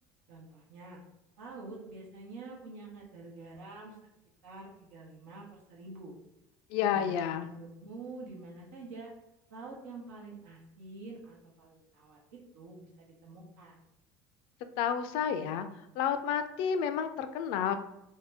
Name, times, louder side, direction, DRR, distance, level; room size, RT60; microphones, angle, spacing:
voice 1, 0.3-1.0 1.4-3.9 4.4-6.1 6.9-7.1 7.4-9.1 9.5-13.8, right 3 dB, 85° right, -4 dB, 1.0 m, -47 dB
voice 2, 6.7-7.5 14.8-15.7 16.0-17.8, left 8 dB, 70° left, 9 dB, 0.3 m, -30 dB
2.7 x 2.2 x 3.3 m, 0.88 s
supercardioid pair, 90°, 9 cm